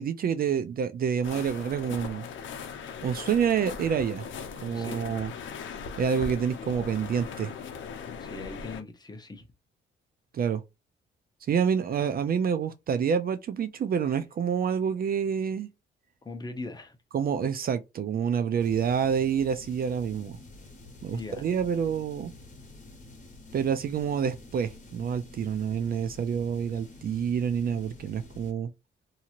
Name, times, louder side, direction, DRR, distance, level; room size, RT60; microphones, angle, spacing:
voice 1, 0.0-2.2 3.0-4.3 4.6-5.3 6.0-7.5 10.3-10.6 11.5-15.7 17.1-20.4 21.0-22.3 23.5-28.7, right 7 dB, 45° right, 0.4 m, -28 dB
sound 1, 1.2-8.8, left 6 dB, 65° left, 0.7 m, -39 dB
voice 2, 4.7-5.0 8.2-9.5 16.2-17.0 21.1-21.5, left 3 dB, 20° left, 0.8 m, -40 dB
sound 2, 18.6-28.5, left 2 dB, 40° left, 1.4 m, -49 dB
2.8 x 2.8 x 2.5 m
cardioid pair, 100°, 21 cm